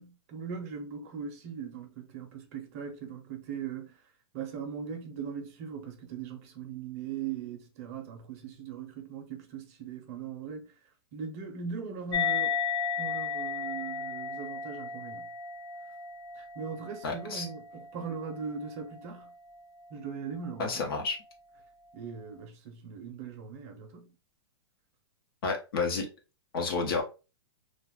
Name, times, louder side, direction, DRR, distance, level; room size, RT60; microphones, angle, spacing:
voice 1, 0.0-3.9 4.3-10.7 11.1-12.6 13.0-15.3 16.4-19.3 19.9-20.9 21.9-24.1, right 6 dB, 35° right, 0.6 m, -40 dB
sound 1, 12.1-19.0, left 6 dB, 85° left, 0.5 m, -34 dB
voice 2, 17.0-17.5 20.6-21.2 25.4-26.1 26.5-27.0, left 4 dB, 60° left, 0.9 m, -30 dB
2.5 x 2.3 x 3.4 m
hypercardioid pair, 160°, 14 cm